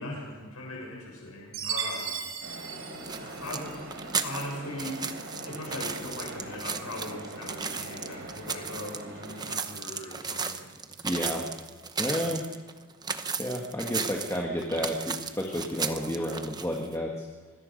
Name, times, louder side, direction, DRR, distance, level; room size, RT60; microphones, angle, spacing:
voice 1, 0.0-2.2 3.1-5.2 5.4-11.2, left 1 dB, 85° left, -1 dB, 7.1 m, -40 dB
Chime, 1.5-3.9, right 7 dB, 70° right, 4.3 m, -36 dB
sound 1, 2.4-9.6, right 1 dB, 50° right, 4.0 m, -42 dB
sound 2, 3.0-16.9, right 5 dB, 20° right, 0.9 m, -35 dB
voice 2, 11.0-11.4 12.0-12.4 13.4-17.3, equal, 15° left, -1 dB, 1.7 m, -31 dB
25.5 x 20.5 x 5.4 m, 1.4 s
head